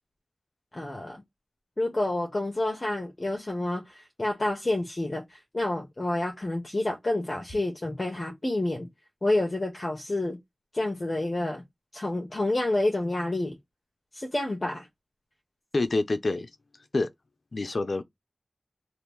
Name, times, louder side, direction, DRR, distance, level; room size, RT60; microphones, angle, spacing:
voice 1, 0.7-1.2 1.8-8.9 9.2-10.4 10.7-11.6 11.9-13.6 14.1-14.9, left 2 dB, 45° left, 0.9 m, -29 dB
voice 2, 15.7-16.5 16.9-17.1 17.5-18.0, left 2 dB, 65° left, 0.5 m, -26 dB
2.9 x 2.5 x 3.5 m
wide cardioid pair, 70°, 0 cm